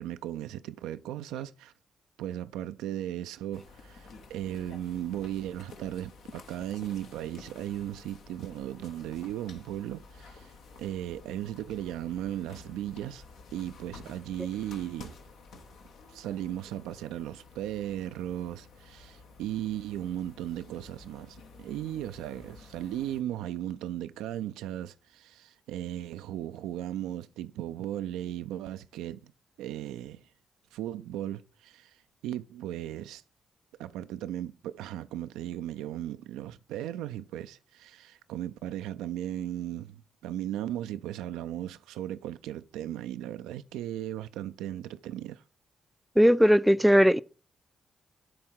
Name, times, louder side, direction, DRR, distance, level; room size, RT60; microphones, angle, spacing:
voice 1, 0.0-1.7 2.2-10.5 10.8-13.2 13.5-15.1 16.1-29.3 29.6-30.2 30.7-31.9 32.2-33.2 33.8-45.4, right 12 dB, 75° right, 0.3 m, -36 dB
sound 1, 3.5-23.2, left 4 dB, 70° left, 1.0 m, -51 dB
voice 2, 46.2-47.2, equal, 5° right, 0.4 m, -19 dB
7.8 x 3.5 x 5.7 m
hypercardioid pair, 40°, 0 cm